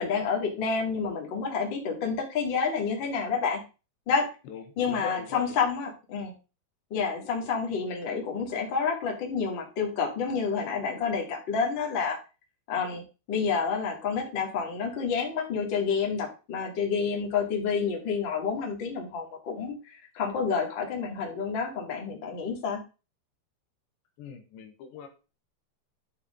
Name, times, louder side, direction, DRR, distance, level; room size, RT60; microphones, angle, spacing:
voice 1, 0.0-3.6 4.1-4.3 4.8-6.3 6.9-12.2 12.7-22.8, left 5 dB, 35° left, 0 dB, 2.0 m, -29 dB
voice 2, 4.4-5.6 24.2-25.1, left 5 dB, 75° left, 4 dB, 3.4 m, -42 dB
11.5 x 5.6 x 3.7 m, 0.31 s
omnidirectional pair, 5.2 m